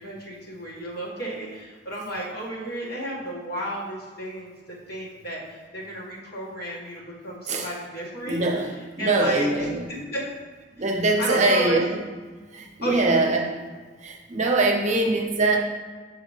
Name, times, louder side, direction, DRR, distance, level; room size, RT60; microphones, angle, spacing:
voice 1, 0.0-4.5 4.9-8.4 9.0-10.3 10.9-11.8 12.8-13.3, right 1 dB, 55° left, -5 dB, 1.7 m, -32 dB
voice 2, 8.2-8.7 9.0-9.9 10.8-12.0 12.5-13.5 14.0-15.6, right 2 dB, 40° right, 2 dB, 0.6 m, -23 dB
7.0 x 4.7 x 3.2 m, 1.4 s
head